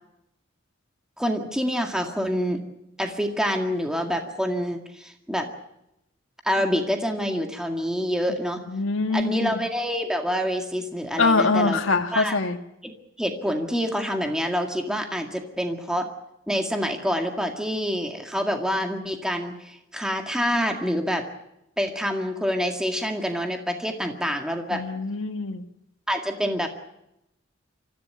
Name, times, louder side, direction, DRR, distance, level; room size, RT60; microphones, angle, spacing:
voice 1, 1.2-2.6 3.0-5.5 6.4-8.6 9.1-11.8 12.1-12.4 12.8-16.1 16.5-21.2 21.8-24.8 26.1-26.7, equal, 5° right, 4 dB, 2.0 m, -27 dB
voice 2, 8.7-9.5 11.2-12.6 24.7-25.6, left 3 dB, 90° left, 4 dB, 1.6 m, -23 dB
24.5 x 15.0 x 9.4 m, 0.86 s
head